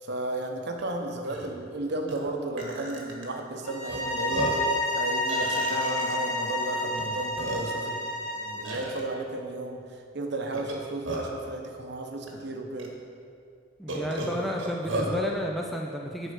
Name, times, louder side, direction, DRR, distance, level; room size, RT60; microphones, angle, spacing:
voice 1, 0.0-4.6 4.9-8.0 8.4-12.9, right 2 dB, 60° right, 3 dB, 0.9 m, -34 dB
Burping eructation, 0.8-0.9 1.2-1.5 2.1-2.2 2.6-3.3 3.9-4.0 4.3-4.7 5.3-6.3 7.0-7.1 7.4-7.9 8.6-9.0 10.5-11.4 12.3-12.4 12.8-12.9 13.9-15.2, right 2 dB, 90° right, 1.5 m, -33 dB
sound 1, 3.6-8.8, left 1 dB, 40° left, 1.7 m, -30 dB
voice 2, 13.8-16.3, equal, ahead, 0 dB, 0.4 m, -32 dB
10.5 x 4.6 x 5.0 m, 2.3 s
head